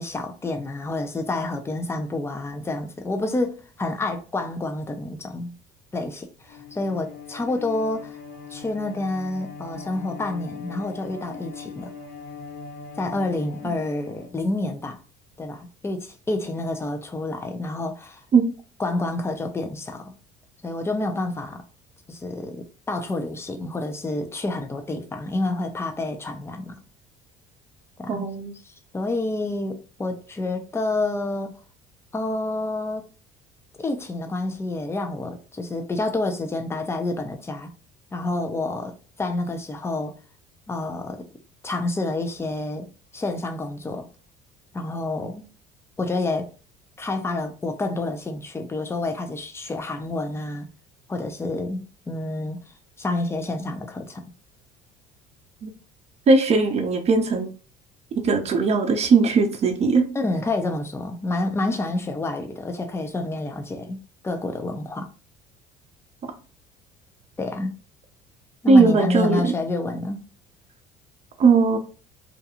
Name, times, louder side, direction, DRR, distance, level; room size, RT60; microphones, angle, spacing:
voice 1, 0.0-5.5 5.9-8.2 8.5-11.9 13.0-15.0 15.4-18.2 18.8-20.1 20.6-21.6 22.1-26.8 28.0-28.3 28.6-31.6 32.1-33.0 33.8-37.7 38.1-40.2 40.7-41.3 41.6-44.1 44.7-45.4 46.0-46.5 47.0-50.7 51.1-52.6 53.0-54.2 60.1-65.1 67.4-67.7 68.6-70.2, left 2 dB, 15° left, 0.6 m, -28 dB
Bowed string instrument, 6.4-14.8, left 5 dB, 60° left, 1.1 m, -40 dB
voice 2, 28.1-28.5 55.6-55.7 56.3-57.5 58.1-60.0 68.7-69.5 71.4-71.8, right 4 dB, 40° right, 0.7 m, -18 dB
2.5 x 2.2 x 2.9 m
supercardioid pair, 85°, 17 cm